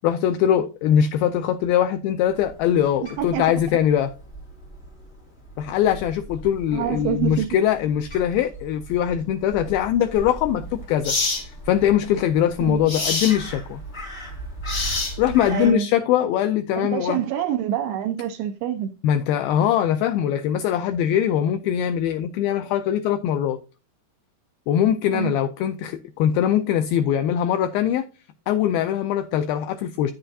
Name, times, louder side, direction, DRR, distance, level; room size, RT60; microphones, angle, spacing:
voice 1, 0.0-4.1 5.6-11.1 11.4-13.8 15.2-17.2 19.0-23.6 24.7-28.1 28.5-30.1, left 10 dB, 85° left, 2.1 m, -22 dB
Crow, 2.3-15.7, right 1 dB, 25° left, 2.4 m, -39 dB
voice 2, 6.7-7.5 12.6-12.8 15.5-15.9 16.8-18.9 25.1-25.4, right 10 dB, 85° right, 2.2 m, -26 dB
sound 1, 10.2-10.3 11.0-11.4 12.9-13.4 14.7-15.4, left 3 dB, 45° left, 1.3 m, -25 dB
9.8 x 7.9 x 2.7 m
omnidirectional pair, 4.8 m